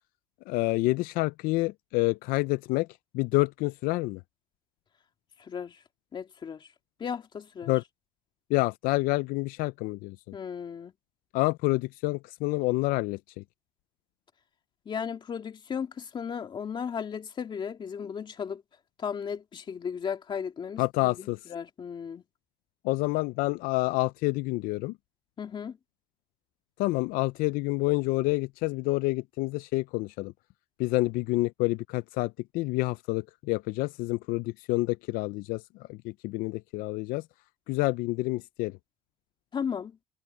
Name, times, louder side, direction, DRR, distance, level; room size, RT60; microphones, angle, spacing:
voice 1, 0.5-2.9 3.1-4.2 7.7-7.8 8.5-10.2 11.3-13.4 20.8-21.4 22.8-24.9 26.8-30.3 30.8-35.6 35.9-37.2 37.7-38.7, left 21 dB, 80° left, 0.4 m, -28 dB
voice 2, 5.4-5.8 6.1-6.7 7.0-7.7 10.3-10.9 14.9-18.6 19.0-22.2 25.4-25.8 39.5-39.9, left 7 dB, 35° left, 2.7 m, -35 dB
cardioid pair, 140°, 15 cm